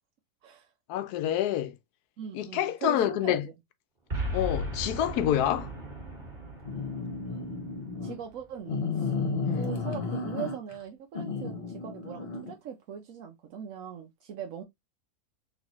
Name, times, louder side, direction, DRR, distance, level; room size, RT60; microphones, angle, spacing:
voice 1, 0.9-1.7 2.3-3.5 4.3-5.7 9.4-9.6, left 11 dB, 90° left, 1.1 m, -27 dB
voice 2, 2.2-3.4 8.0-9.1 9.5-14.6, right 8 dB, 65° right, 1.0 m, -40 dB
Boom, 4.1-8.5, equal, 35° right, 1.5 m, -36 dB
sound 1, 6.6-8.2 8.7-10.8 11.1-12.5, left 4 dB, 45° left, 1.3 m, -32 dB
4.0 x 3.1 x 2.9 m
omnidirectional pair, 1.6 m